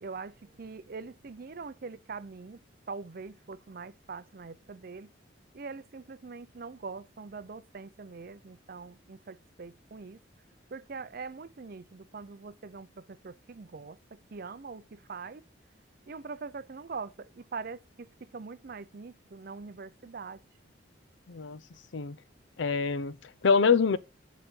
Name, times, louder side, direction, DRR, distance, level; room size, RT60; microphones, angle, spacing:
voice 1, 0.0-2.6 2.9-5.1 5.5-10.2 10.7-15.4 16.1-20.4, right 4 dB, 50° right, 0.5 m, -43 dB
voice 2, 21.3-21.6 21.9-22.2 22.6-24.0, left 5 dB, 85° left, 0.6 m, -25 dB
9.1 x 4.1 x 5.3 m
head